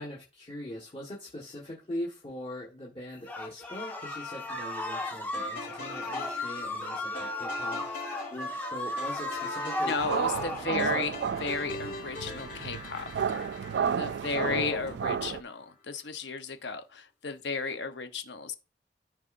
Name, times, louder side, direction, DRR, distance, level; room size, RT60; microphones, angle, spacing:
voice 1, 0.0-7.8 8.3-10.1 10.6-11.1 14.4-15.3, left 1 dB, 30° left, 1.5 m, -41 dB
sound 1, 3.3-10.7, left 1 dB, 10° left, 1.4 m, -35 dB
sound 2, 5.3-15.6, left 2 dB, 55° left, 3.6 m, -43 dB
voice 2, 9.8-11.1 11.4-13.4 14.0-18.5, left 4 dB, 85° left, 0.9 m, -34 dB
sound 3, 10.0-15.4, right 7 dB, 75° right, 0.3 m, -32 dB
13.5 x 4.9 x 2.6 m
head